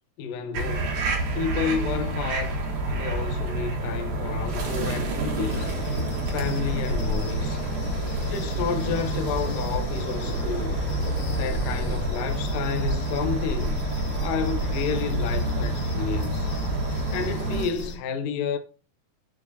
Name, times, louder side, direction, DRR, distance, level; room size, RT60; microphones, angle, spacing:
voice 1, 0.2-1.0 1.4-2.6 2.9-5.7 6.3-7.6 8.3-10.8 11.4-13.8 14.2-16.5 17.1-18.6, left 6 dB, 80° left, 2.0 m, -30 dB
sound 1, 0.5-17.6, right 2 dB, 55° right, 2.3 m, -28 dB
sound 2, 5.5-18.0, left 3 dB, 50° left, 3.0 m, -36 dB
sound 3, 10.7-15.7, right 3 dB, 85° right, 4.0 m, -37 dB
11.0 x 4.7 x 2.7 m
omnidirectional pair, 4.8 m